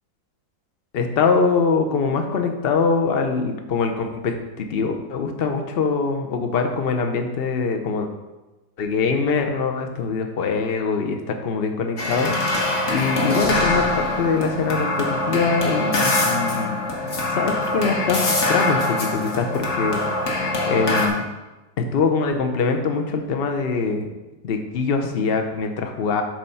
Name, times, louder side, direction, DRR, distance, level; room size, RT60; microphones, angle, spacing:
voice 1, 0.9-8.1 8.8-16.8 17.3-20.0 20.7-21.2 21.8-24.1 24.4-26.2, left 4 dB, 60° left, 4 dB, 0.6 m, -23 dB
sound 1, 12.0-21.1, left 2 dB, 45° left, 1.3 m, -23 dB
7.8 x 4.2 x 5.5 m, 1.1 s
omnidirectional pair, 2.0 m